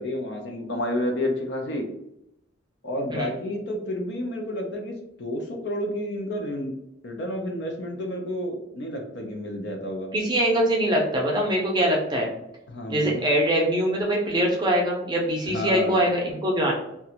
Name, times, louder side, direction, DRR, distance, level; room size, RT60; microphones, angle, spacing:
voice 1, 0.0-1.9 2.8-6.8 7.0-10.1 12.7-13.2 15.5-16.0, left 1 dB, 60° left, 3 dB, 0.5 m, -30 dB
voice 2, 10.1-12.3 12.9-16.7, right 1 dB, 20° right, -2 dB, 0.5 m, -23 dB
2.4 x 2.2 x 2.8 m, 0.82 s
head